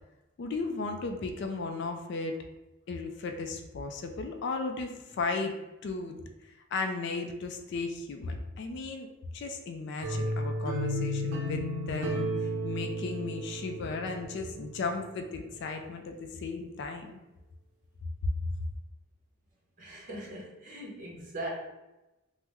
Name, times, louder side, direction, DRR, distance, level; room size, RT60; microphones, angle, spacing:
voice 1, 0.4-2.4 2.9-5.5 5.8-6.2 6.7-9.1 9.3-17.1 18.5-18.6, left 3 dB, 55° left, 5 dB, 0.3 m, -35 dB
sound 1, 10.0-14.9, equal, 65° right, 0.6 m, -33 dB
voice 2, 19.8-21.5, right 1 dB, 40° right, -4 dB, 0.8 m, -40 dB
3.5 x 2.0 x 3.0 m, 1.0 s
head